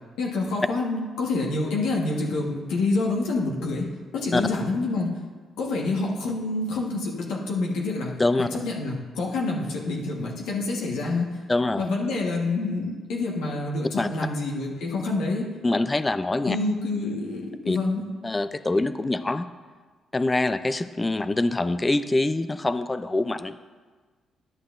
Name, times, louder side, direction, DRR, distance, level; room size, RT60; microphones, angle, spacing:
voice 1, 0.2-5.1 5.6-8.1 8.5-11.3 11.8-15.5 16.4-18.0, left 3 dB, 85° left, -2 dB, 1.3 m, -27 dB
voice 2, 11.5-11.9 14.0-14.1 15.6-16.6 17.7-17.8 18.2-19.5 20.1-23.6, left 2 dB, 20° left, 12 dB, 0.4 m, -24 dB
10.5 x 9.6 x 2.5 m, 1.4 s
cardioid pair, 90°, 0 cm